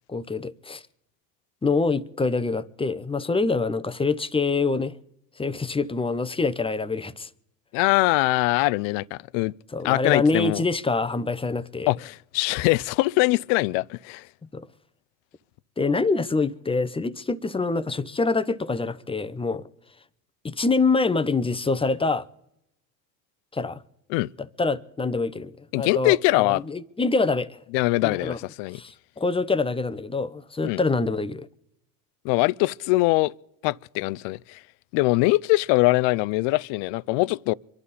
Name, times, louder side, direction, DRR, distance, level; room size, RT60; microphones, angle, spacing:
voice 1, 0.1-0.8 1.6-4.9 5.4-7.3 9.7-11.9 14.5-14.7 15.8-19.6 20.4-22.3 23.5-23.8 24.4-27.6 28.0-28.4 28.7-31.5, left 3 dB, 10° left, 0.7 m, -25 dB
voice 2, 7.7-9.5 9.8-10.6 11.9-14.3 24.1-24.3 25.7-26.6 27.7-28.8 30.6-30.8 32.2-33.3 33.6-34.6 34.9-37.5, left 21 dB, 70° left, 0.6 m, -22 dB
25.0 x 11.5 x 4.2 m
supercardioid pair, 85°, 46 cm